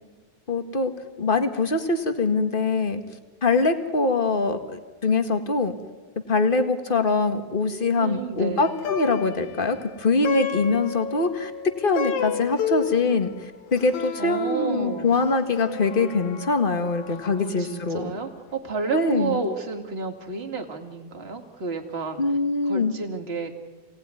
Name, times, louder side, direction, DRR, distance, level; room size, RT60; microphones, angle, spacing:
voice 1, 0.5-0.9 1.2-3.0 3.4-5.8 6.3-11.5 11.8-18.1 18.9-19.4 22.2-22.9, left 3 dB, 30° left, 8 dB, 1.1 m, -23 dB
voice 2, 7.9-8.7 14.2-15.1 17.1-22.2 22.6-23.6, right 4 dB, 20° right, 4 dB, 2.1 m, -31 dB
Plucked string instrument, 8.6-18.1, left 8 dB, 80° left, 2.9 m, -33 dB
27.5 x 18.5 x 9.8 m, 1.4 s
omnidirectional pair, 3.3 m